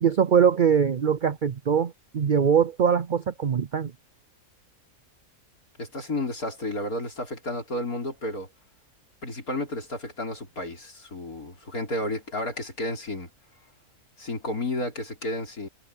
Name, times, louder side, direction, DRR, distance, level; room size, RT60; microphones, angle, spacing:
voice 1, 0.0-3.9, right 7 dB, 65° right, 0.5 m, -22 dB
voice 2, 5.8-8.5 9.2-13.3 14.2-15.7, left 1 dB, 80° left, 5.4 m, -32 dB
omnidirectional pair, 1.5 m